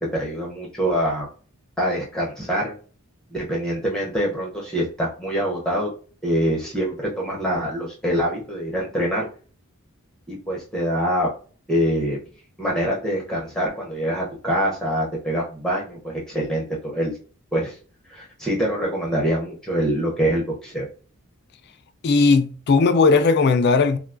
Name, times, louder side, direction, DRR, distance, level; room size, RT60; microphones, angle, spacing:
voice 1, 0.1-1.3 1.8-2.7 3.3-5.9 6.2-9.2 10.3-11.3 11.7-12.2 12.6-17.2 17.5-17.8 18.1-20.9, equal, 5° left, 0.6 m, -24 dB
voice 2, 22.0-24.0, left 4 dB, 50° left, 0.4 m, -17 dB
3.6 x 2.2 x 2.4 m
head